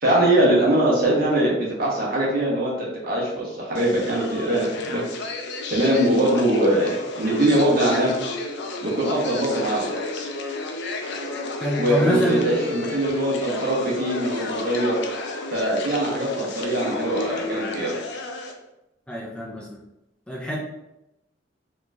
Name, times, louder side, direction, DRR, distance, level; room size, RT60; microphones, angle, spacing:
voice 1, 0.0-5.0 5.7-8.1 8.8-9.9 11.8-15.0 15.5-17.9, right 1 dB, 55° right, -4 dB, 1.1 m, -22 dB
sound 1, 3.7-18.5, left 2 dB, 65° left, 0.5 m, -32 dB
voice 2, 11.6-12.5 19.1-19.8 20.3-20.6, equal, 5° left, -3 dB, 0.5 m, -26 dB
4.2 x 3.0 x 2.4 m, 0.90 s
head